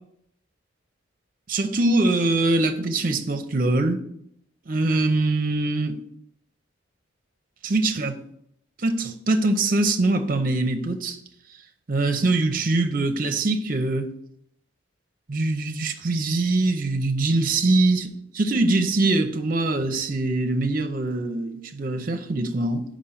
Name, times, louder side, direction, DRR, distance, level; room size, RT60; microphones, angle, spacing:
voice 1, 1.5-4.0 4.7-6.0 7.6-8.2 8.8-11.2 11.9-14.1 15.3-18.1 18.3-22.8, right 2 dB, 45° right, 0.7 m, -23 dB
5.1 x 5.1 x 5.8 m
head